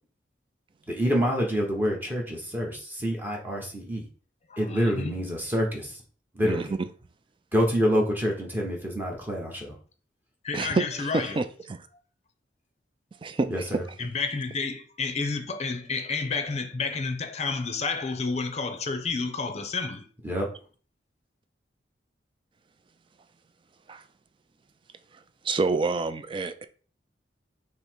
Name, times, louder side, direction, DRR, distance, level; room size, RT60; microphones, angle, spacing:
voice 1, 0.9-4.0 4.6-6.0 6.3-6.7 7.5-9.8 13.5-13.8 20.2-20.5, equal, 10° right, 1.0 m, -27 dB
voice 2, 4.5-5.1 10.4-11.4 14.0-20.0, left 4 dB, 40° left, 0.6 m, -30 dB
voice 3, 6.4-6.9 10.5-11.8 13.2-13.5 13.7-13.8 23.9-24.0 25.4-26.7, right 3 dB, 30° right, 0.3 m, -28 dB
5.5 x 2.1 x 4.5 m
head